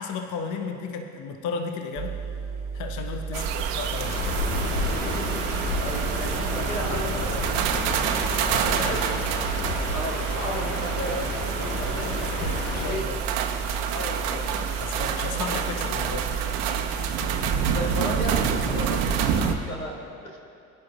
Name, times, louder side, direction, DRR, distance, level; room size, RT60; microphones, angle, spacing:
voice 1, 0.0-2.2 2.7-4.4 8.5-9.0 12.4-13.2 14.8-16.3 18.7-19.0, left 5 dB, 45° left, 5 dB, 1.0 m, -34 dB
sound 1, 2.0-19.6, right 5 dB, 35° right, 1.2 m, -34 dB
sound 2, 3.3-19.5, right 7 dB, 55° right, 1.0 m, -28 dB
sound 3, 4.0-13.0, left 2 dB, 65° left, 1.6 m, -31 dB
voice 2, 5.8-7.5 8.9-9.1 9.9-12.2 12.8-13.0 13.9-14.6 17.7-19.3 19.7-20.0 20.2-20.4, equal, 85° left, -1 dB, 1.5 m, -34 dB
21.0 x 10.5 x 2.4 m, 2.7 s
figure-of-eight pair, 60°, 40 cm